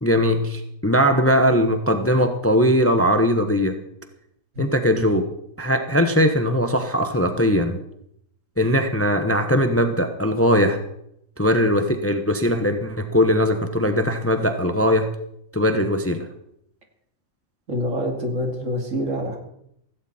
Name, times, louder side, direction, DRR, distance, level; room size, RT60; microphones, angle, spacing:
voice 1, 0.0-3.8 4.6-5.3 5.6-7.8 8.6-10.8 11.4-15.1 15.5-16.3, equal, 10° left, 7 dB, 1.0 m, -20 dB
voice 2, 17.7-19.4, equal, 65° right, 3 dB, 2.9 m, -26 dB
16.5 x 16.0 x 4.4 m, 0.75 s
omnidirectional pair, 1.4 m